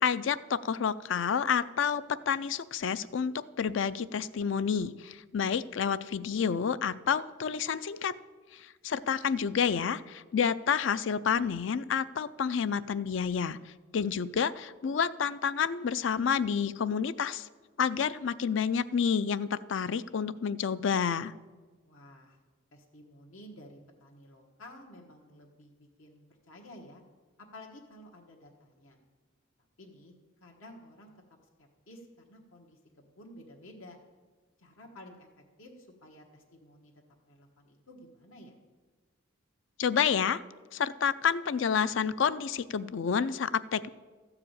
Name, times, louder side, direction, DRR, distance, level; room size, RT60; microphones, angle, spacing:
voice 1, 0.0-8.1 8.5-13.6 13.9-17.5 17.8-21.3 39.8-40.4 40.7-43.9, left 7 dB, 65° left, 16 dB, 0.4 m, -29 dB
voice 2, 21.8-22.4 22.7-27.0 27.4-29.0 29.8-30.1 30.4-31.1 31.6-34.0 34.6-36.9 37.3-38.5, left 1 dB, 80° left, 0 dB, 1.4 m, -52 dB
13.5 x 4.9 x 8.8 m, 1.4 s
head